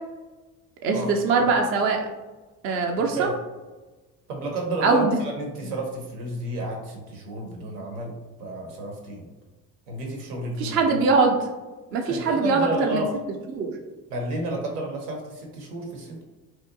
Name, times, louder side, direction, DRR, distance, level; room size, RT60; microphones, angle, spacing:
voice 1, 0.8-2.0 2.6-3.3 4.8-5.2 10.6-11.4 11.9-13.0 13.5-13.7, right 4 dB, 30° right, 2 dB, 0.4 m, -22 dB
voice 2, 3.0-3.3 4.3-9.3 9.9-11.0 12.1-13.2 14.1-16.2, right 1 dB, 75° right, 1 dB, 0.7 m, -31 dB
2.7 x 2.2 x 2.5 m, 1.2 s
figure-of-eight pair, 55°, 47 cm